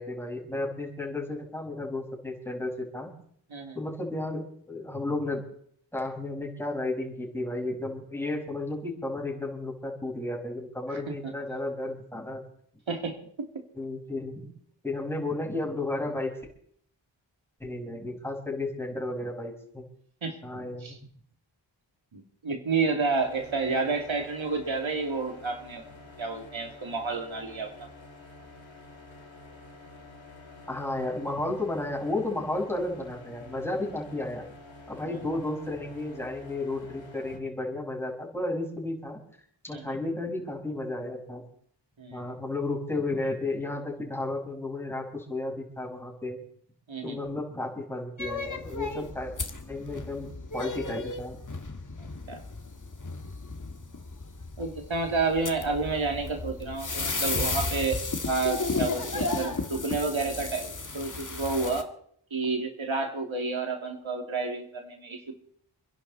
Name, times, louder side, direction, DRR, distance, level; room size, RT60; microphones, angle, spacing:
voice 1, 0.0-3.1 3.7-5.4 5.9-12.4 13.7-14.5 14.8-16.3 17.6-19.8 20.4-21.0 30.7-34.5 34.9-39.2 39.6-41.4 42.1-46.4 47.0-49.3 49.7-50.3 50.5-51.4, left 2 dB, 5° left, -2 dB, 5.8 m, -33 dB
voice 2, 22.1-25.8 26.2-27.9 39.7-39.9 42.0-42.3 46.9-47.2 52.0-52.4 54.6-58.0 58.3-61.9 62.3-65.3, right 4 dB, 90° right, 3 dB, 2.8 m, -30 dB
sound 1, 23.1-37.4, left 2 dB, 80° left, 2.8 m, -49 dB
sound 2, 48.2-61.8, left 3 dB, 40° left, 1.7 m, -34 dB
27.5 x 11.0 x 4.2 m, 0.64 s
wide cardioid pair, 65°, 46 cm